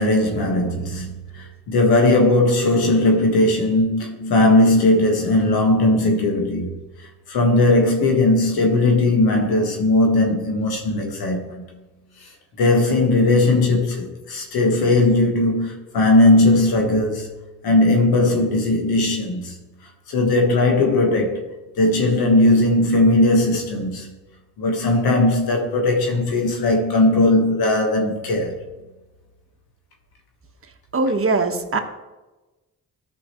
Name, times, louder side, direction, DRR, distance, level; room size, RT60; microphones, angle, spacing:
voice 1, 0.0-6.8 7.3-11.7 12.6-17.3 17.6-19.5 20.1-21.4 21.8-24.1 24.6-28.6, left 2 dB, 85° left, 1.5 m, -18 dB
voice 2, 30.9-31.8, right 3 dB, 35° right, 1.3 m, -21 dB
13.0 x 5.4 x 3.1 m
cardioid pair, 55°, 36 cm